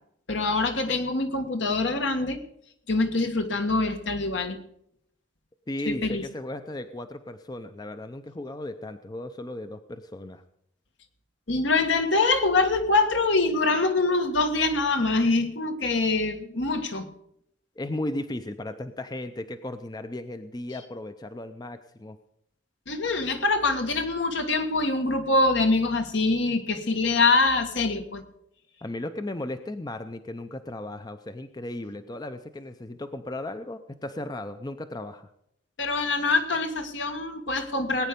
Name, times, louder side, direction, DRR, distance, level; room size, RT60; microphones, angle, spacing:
voice 1, 0.3-2.4 2.9-4.6 5.9-6.3 11.5-17.1 22.9-28.2 35.8-38.1, left 3 dB, 70° left, 6 dB, 1.5 m, -24 dB
voice 2, 5.7-10.4 17.8-22.2 28.8-35.3, left 1 dB, 20° left, 9 dB, 0.5 m, -35 dB
19.0 x 9.4 x 5.2 m, 0.73 s
head